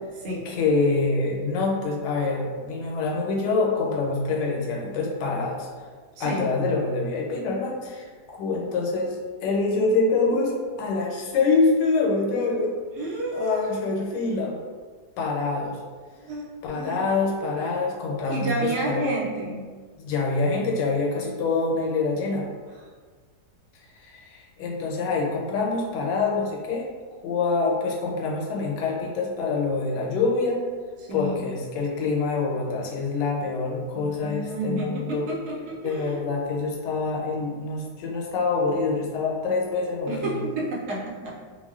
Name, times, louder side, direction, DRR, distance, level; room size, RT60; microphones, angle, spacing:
voice 1, 0.4-5.7 6.2-12.7 13.3-14.6 15.2-15.8 16.6-19.0 20.0-22.5 24.0-26.9 27.2-30.6 31.1-35.3 35.8-40.4, left 3 dB, 90° left, -1 dB, 1.2 m, -25 dB
voice 2, 6.2-6.5 13.0-13.8 16.1-17.0 18.3-19.6 22.7-22.9 31.0-31.4 33.9-36.2 40.1-41.3, right 1 dB, 75° right, -5 dB, 1.1 m, -30 dB
2.9 x 2.1 x 2.3 m, 1.5 s
omnidirectional pair, 1.8 m